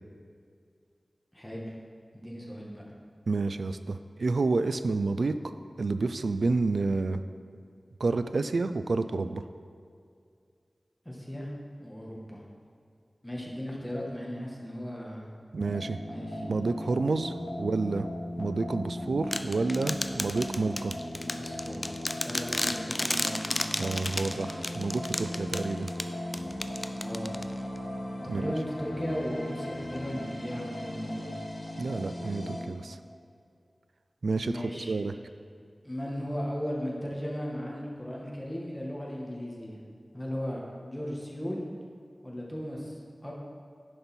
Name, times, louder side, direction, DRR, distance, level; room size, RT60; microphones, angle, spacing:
voice 1, 1.3-1.7 2.1-2.8 11.1-11.5 11.8-12.4 13.2-15.3 16.1-16.4 21.2-23.6 27.0-27.3 28.3-31.4 34.4-34.9 35.8-39.8 40.1-41.6 42.2-42.9 43.2-43.3, equal, 10° left, -3 dB, 1.8 m, -36 dB
voice 2, 3.3-5.3 5.8-7.2 8.0-9.4 15.5-16.0 16.4-18.1 18.4-20.9 23.8-25.9 28.3-28.5 31.8-33.0 34.2-35.1, right 3 dB, 85° right, 10 dB, 0.3 m, -29 dB
sound 1, 15.6-32.6, left 1 dB, 45° left, 2.2 m, -38 dB
sound 2, 19.3-27.8, left 1 dB, 25° left, 0.5 m, -33 dB
10.5 x 5.4 x 4.4 m, 2.3 s
wide cardioid pair, 50°, 0 cm